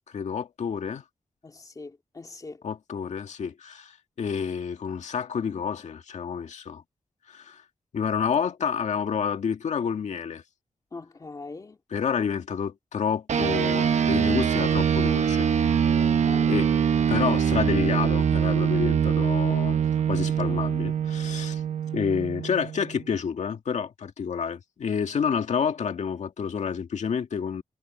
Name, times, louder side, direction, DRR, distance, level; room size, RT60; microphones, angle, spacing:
voice 1, 0.1-1.0 2.6-6.8 7.3-7.6 7.9-10.4 11.9-15.5 16.5-16.7 17.1-19.8 20.1-21.6 21.9-27.6, left 6 dB, 75° left, 2.0 m, -29 dB
voice 2, 1.4-2.6 10.9-11.8 16.0-16.6, left 3 dB, 30° left, 2.3 m, -42 dB
sound 1, 13.3-23.0, right 8 dB, 75° right, 0.9 m, -24 dB
wide cardioid pair, 150°, 12 cm